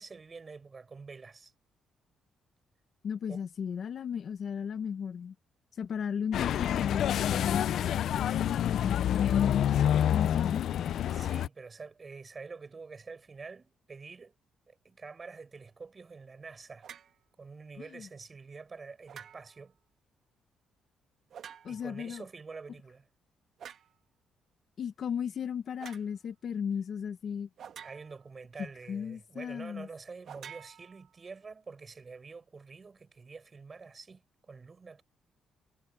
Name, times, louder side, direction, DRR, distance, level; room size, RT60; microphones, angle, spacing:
voice 1, 0.0-1.5 3.3-3.4 11.1-14.3 14.7-16.9 17.4-19.7 21.7-23.1 27.8-35.0, right 4 dB, 30° right, 6.1 m, -47 dB
voice 2, 3.0-5.3 5.7-8.0 8.3-9.6 10.1-11.0 17.8-18.1 21.6-22.2 24.8-27.5 28.9-29.9, left 7 dB, 55° left, 1.1 m, -35 dB
sound 1, 6.3-11.5, left 10 dB, 70° left, 0.5 m, -28 dB
sound 2, 16.8-17.2 19.1-19.7 21.3-22.0 23.6-24.0 25.8-26.1 27.6-28.3 30.2-31.4, right 8 dB, 60° right, 1.8 m, -49 dB
cardioid pair, 115°, 0 cm